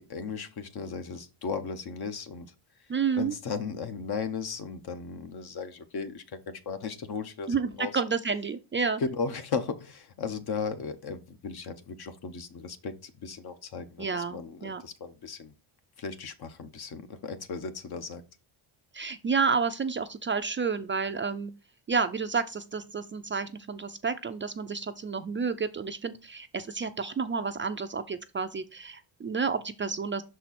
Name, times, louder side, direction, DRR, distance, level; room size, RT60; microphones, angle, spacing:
voice 1, 0.0-2.5 2.8-8.0 9.0-15.5 16.0-18.2, left 5 dB, 55° left, 1.0 m, -36 dB
voice 2, 2.9-3.3 7.5-9.0 14.0-14.8 18.9-21.5 21.9-30.2, right 5 dB, 25° right, 0.4 m, -30 dB
6.2 x 4.4 x 4.2 m
cardioid pair, 110°, 46 cm